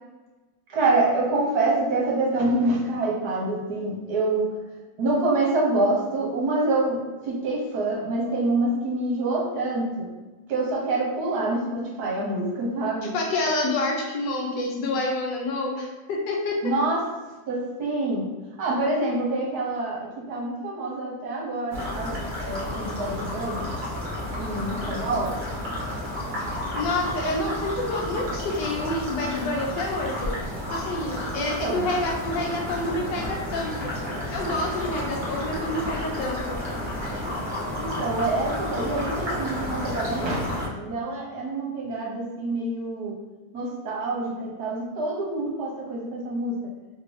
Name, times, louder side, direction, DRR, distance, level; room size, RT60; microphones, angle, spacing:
voice 1, 0.7-4.6 5.0-10.1 10.5-13.1 16.6-17.0 17.5-18.3 18.6-23.7 24.4-25.4 31.4-31.9 37.8-43.1 43.5-46.5, right 2 dB, 65° right, -3 dB, 1.2 m, -26 dB
voice 2, 13.1-16.7 26.7-30.3 30.7-33.9 34.3-36.6, left 2 dB, 80° left, 0 dB, 1.3 m, -28 dB
sound 1, 21.7-40.7, left 1 dB, 35° right, 0.8 m, -31 dB
3.3 x 2.6 x 3.1 m, 1.2 s
omnidirectional pair, 1.9 m